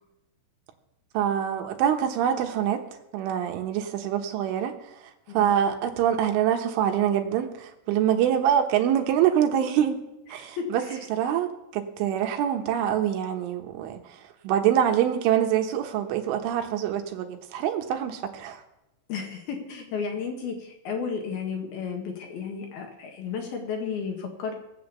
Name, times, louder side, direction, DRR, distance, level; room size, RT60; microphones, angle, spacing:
voice 1, 1.2-2.8 3.1-4.7 5.3-10.0 10.3-10.8 11.1-14.0 14.4-18.6, right 10 dB, 85° right, 5 dB, 3.7 m, -25 dB
voice 2, 10.3-11.1 19.1-24.5, left 6 dB, 60° left, 3 dB, 3.2 m, -33 dB
19.5 x 8.1 x 6.9 m, 0.93 s
omnidirectional pair, 5.5 m